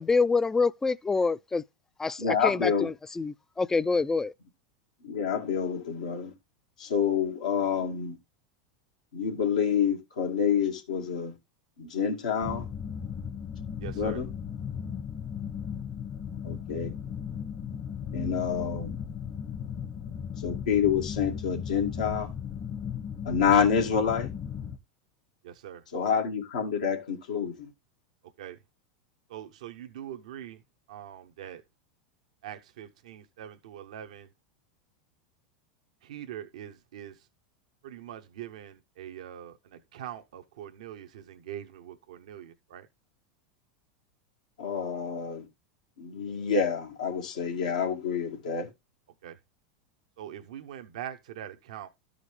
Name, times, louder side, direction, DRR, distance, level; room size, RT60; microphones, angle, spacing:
voice 1, 0.0-1.6 2.0-4.3, left 4 dB, 15° left, 0.4 m, -26 dB
voice 2, 2.2-2.9 5.0-6.3 6.8-8.2 9.1-11.4 11.8-12.7 14.0-14.3 16.4-16.9 18.1-19.0 20.4-22.3 23.2-24.3 25.9-27.7 44.6-45.5 46.0-48.7, left 7 dB, 85° left, 2.1 m, -28 dB
sound 1, 12.4-24.8, left 7 dB, 45° left, 1.3 m, -36 dB
voice 3, 13.8-14.2 25.4-25.8 28.4-28.6 29.3-30.6 30.9-31.6 32.4-34.3 36.0-37.2 37.8-42.9 49.2-49.4 50.2-51.9, right 10 dB, 75° right, 0.8 m, -43 dB
13.0 x 5.1 x 3.2 m
hypercardioid pair, 100°, 4 cm